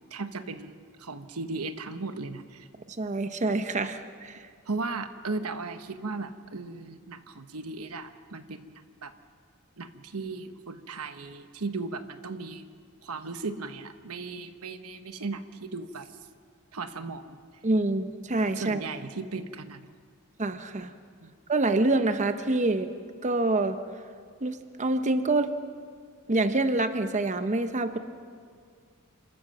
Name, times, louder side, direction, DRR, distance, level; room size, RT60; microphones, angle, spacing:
voice 1, 0.0-2.7 4.7-9.1 9.8-12.7 13.0-16.1 16.7-17.4 18.5-19.9 21.2-21.3, right 3 dB, 90° right, 9 dB, 1.1 m, -36 dB
voice 2, 3.0-4.4 17.6-18.8 20.4-20.9 21.5-22.9 23.2-23.8 24.4-25.5 26.3-28.0, right 2 dB, 35° right, 9 dB, 0.8 m, -26 dB
27.5 x 13.5 x 7.4 m, 2.1 s
head